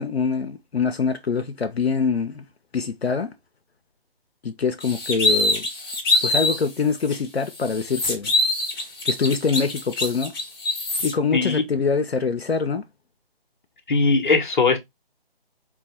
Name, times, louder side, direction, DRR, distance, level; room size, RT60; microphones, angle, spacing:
voice 1, 0.0-2.4 2.7-3.3 4.4-5.6 6.2-8.3 9.0-10.3 11.0-12.8, left 5 dB, 85° left, 0.8 m, -24 dB
sound 1, 4.8-6.6 7.1-7.2 7.5-11.1, left 2 dB, 25° left, 1.4 m, -24 dB
voice 2, 11.3-11.6 13.9-14.8, left 4 dB, 50° left, 1.2 m, -19 dB
4.5 x 2.3 x 4.3 m
figure-of-eight pair, 160°, 31 cm